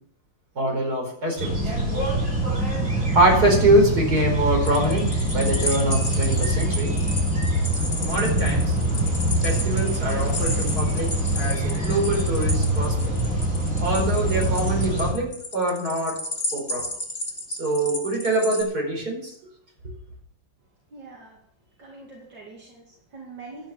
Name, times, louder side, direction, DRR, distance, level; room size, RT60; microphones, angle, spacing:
voice 1, 0.6-1.6 3.1-7.0 8.0-8.7 9.4-13.0 13.8-16.2 16.5-16.9 17.5-19.3, right 1 dB, 50° right, 1 dB, 5.2 m, -24 dB
sound 1, 1.4-15.1, right 1 dB, 35° right, 7.1 m, -24 dB
sound 2, 4.6-18.6, left 1 dB, 40° left, 2.8 m, -33 dB
voice 2, 20.9-21.4 21.8-23.7, right 3 dB, 70° right, -2 dB, 3.0 m, -43 dB
12.5 x 9.3 x 6.9 m, 0.66 s
omnidirectional pair, 2.0 m